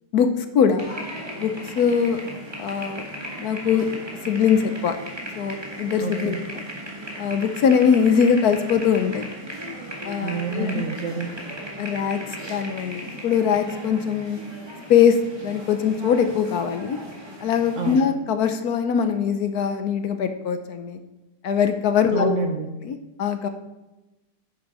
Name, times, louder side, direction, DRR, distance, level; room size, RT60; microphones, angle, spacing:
voice 1, 0.1-0.8 1.4-2.2 2.6-3.0 3.4-3.9 4.3-5.0 5.4-6.4 7.2-9.2 10.0-10.8 11.8-14.4 14.9-17.0 17.4-21.0 21.4-22.4 22.8-23.5, left 7 dB, 65° left, 8 dB, 1.2 m, -22 dB
sound 1, 0.8-18.0, equal, 15° right, 1.8 m, -37 dB
voice 2, 6.0-6.4 10.2-11.3 17.8-18.1 22.1-22.7, right 4 dB, 55° right, 5 dB, 1.0 m, -28 dB
10.0 x 7.7 x 4.8 m, 1.0 s
omnidirectional pair, 1.9 m